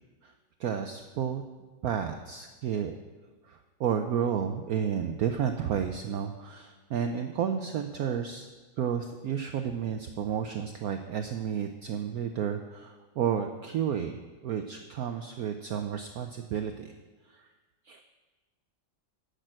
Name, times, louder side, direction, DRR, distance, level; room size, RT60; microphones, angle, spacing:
voice 1, 0.6-1.4 1.8-2.9 3.4-8.5 8.8-16.9 17.3-17.5 17.9-18.0, right 8 dB, 70° right, 7 dB, 0.9 m, -31 dB
10.5 x 6.6 x 7.5 m, 1.3 s
omnidirectional pair, 2.1 m